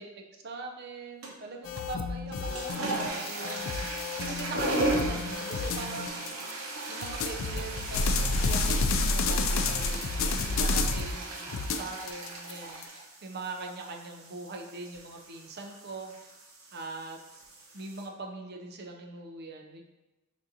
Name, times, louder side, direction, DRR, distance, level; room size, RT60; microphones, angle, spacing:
voice 1, 0.4-3.7 4.2-6.4 6.9-12.8 13.2-16.1 16.7-17.2 17.7-19.9, right 3 dB, 50° right, 2 dB, 0.6 m, -41 dB
sound 1, 1.2-1.6 2.2-18.0, right 2 dB, 75° right, 0.8 m, -37 dB
sound 2, 1.7-6.5 7.0-11.2 11.5-12.8, left 3 dB, 65° left, 0.4 m, -30 dB
6.1 x 2.7 x 2.7 m, 1.1 s
head